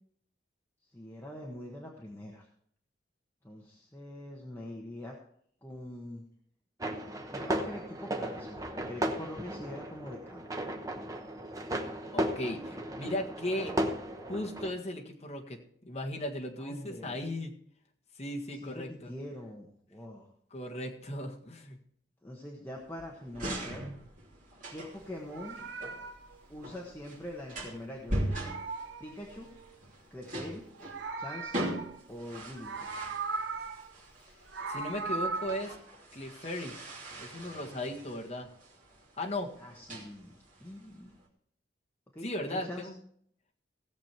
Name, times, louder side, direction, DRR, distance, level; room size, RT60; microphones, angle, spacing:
voice 1, 0.8-2.5 3.4-5.2 5.6-6.2 7.3-10.5 16.6-17.3 18.5-20.3 22.2-23.9 24.7-25.6 26.5-28.2 29.0-29.5 30.1-30.6 31.2-31.7 32.1-32.9 39.6-41.1 42.1-42.9, left 1 dB, 10° left, -2 dB, 1.3 m, -44 dB
sound 1, 6.8-14.7, right 1 dB, 20° right, 1.0 m, -35 dB
voice 2, 12.1-13.7 14.2-15.6 15.8-17.5 18.1-19.1 20.5-21.8 34.3-34.4 34.7-35.8 36.1-36.7 37.2-38.5 39.2-39.5 42.2-43.0, left 1 dB, 35° left, 0 dB, 1.7 m, -36 dB
sound 2, 22.7-41.2, right 1 dB, 45° right, 2.9 m, -41 dB
Meow, 25.1-27.8 28.1-29.8 30.6-32.2 32.5-33.9 34.3-35.6, right 4 dB, 80° right, 0.9 m, -39 dB
17.0 x 7.4 x 4.5 m, 0.64 s
head